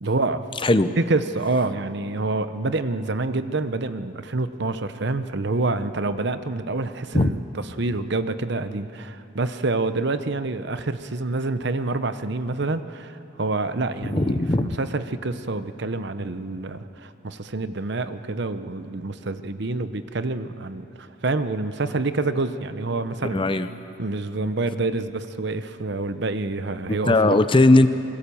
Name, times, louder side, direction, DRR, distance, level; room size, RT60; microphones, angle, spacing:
voice 1, 0.0-0.4 1.0-7.4 7.8-23.4 24.0-27.4, right 3 dB, 55° right, 11 dB, 0.9 m, -27 dB
voice 2, 0.6-0.9 7.1-7.3 14.1-14.7 23.3-23.7 27.1-27.9, left 2 dB, 25° left, 11 dB, 0.7 m, -18 dB
27.0 x 21.5 x 7.1 m, 2.8 s
head